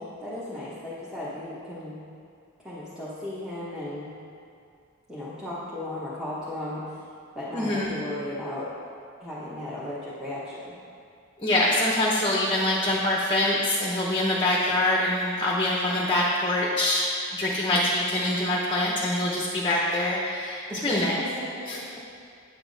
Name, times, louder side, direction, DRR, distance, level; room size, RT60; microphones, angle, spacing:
voice 1, 0.0-2.0 2.6-4.1 5.1-7.0 7.3-8.7 9.2-10.8 20.7-22.2, left 1 dB, 5° right, -10 dB, 1.0 m, -36 dB
voice 2, 7.5-7.9 11.4-17.1 17.3-21.2 21.7-21.8, left 1 dB, 20° left, -3 dB, 0.8 m, -24 dB
9.5 x 6.9 x 4.0 m, 2.4 s
head